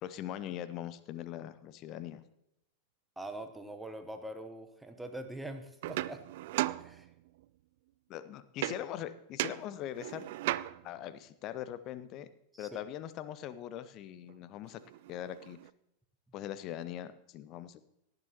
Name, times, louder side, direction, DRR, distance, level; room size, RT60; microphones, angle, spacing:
voice 1, 0.0-2.2 8.1-10.2 10.8-12.3 12.6-14.8 15.1-15.6 16.3-17.8, left 11 dB, 35° left, 14 dB, 0.7 m, -41 dB
voice 2, 3.2-6.2 6.8-7.1 12.5-12.7, right 1 dB, 5° right, 7 dB, 1.0 m, -43 dB
sound 1, 5.8-7.4 8.6-9.1 9.4-11.0 14.3-14.4 14.7-15.7, right 16 dB, 50° right, 0.3 m, -37 dB
18.0 x 10.5 x 2.9 m, 0.81 s
figure-of-eight pair, 90°, 0 cm